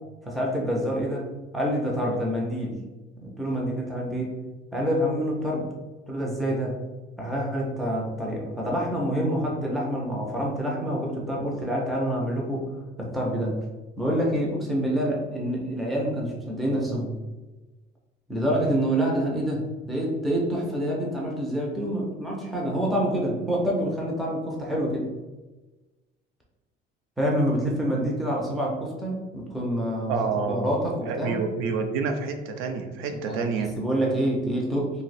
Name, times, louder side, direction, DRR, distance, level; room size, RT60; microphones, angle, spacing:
voice 1, 0.2-1.3 1.5-2.8 3.2-4.4 4.7-5.7 6.1-6.8 7.2-12.7 13.0-13.6 14.0-17.1 18.3-25.1 27.2-30.1 30.5-31.4 33.3-33.4 33.8-34.9, equal, ahead, -3 dB, 0.4 m, -27 dB
voice 2, 30.1-30.7 31.0-33.7, right 5 dB, 80° right, 5 dB, 0.5 m, -28 dB
2.6 x 2.0 x 4.0 m, 1.2 s
cardioid pair, 180°, 21 cm